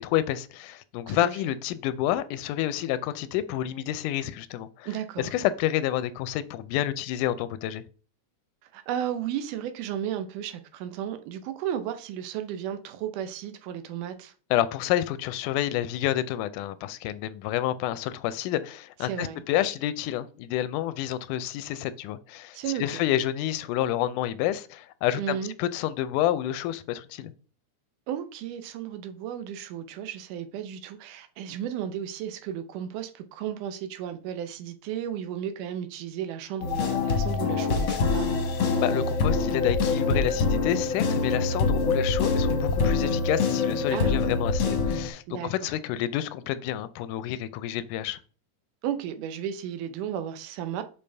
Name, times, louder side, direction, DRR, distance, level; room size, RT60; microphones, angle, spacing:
voice 1, 0.0-4.9 5.2-7.8 14.5-27.3 38.8-48.2, left 12 dB, 90° left, 2.1 m, -29 dB
voice 2, 1.1-1.5 4.9-5.4 8.6-14.3 19.0-19.4 22.5-22.8 25.2-25.5 28.1-38.3 43.9-44.2 45.3-45.7 48.8-50.8, right 10 dB, 90° right, 2.3 m, -34 dB
sound 1, 36.6-45.1, left 4 dB, 65° left, 1.3 m, -25 dB
6.8 x 5.3 x 3.3 m
omnidirectional pair, 3.6 m